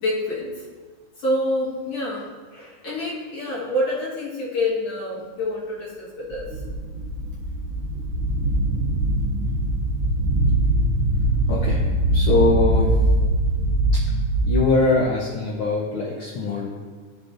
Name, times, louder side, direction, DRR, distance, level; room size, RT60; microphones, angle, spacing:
voice 1, 0.0-0.5 1.2-6.5, left 1 dB, 60° left, -7 dB, 2.5 m, -27 dB
sound 1, 6.3-14.6, right 1 dB, 70° right, 1.4 m, -22 dB
voice 2, 11.5-11.8 12.1-13.1 13.9-14.0 14.4-16.7, left 3 dB, 80° left, -2 dB, 1.1 m, -22 dB
13.0 x 5.5 x 2.6 m, 1.5 s
omnidirectional pair, 3.5 m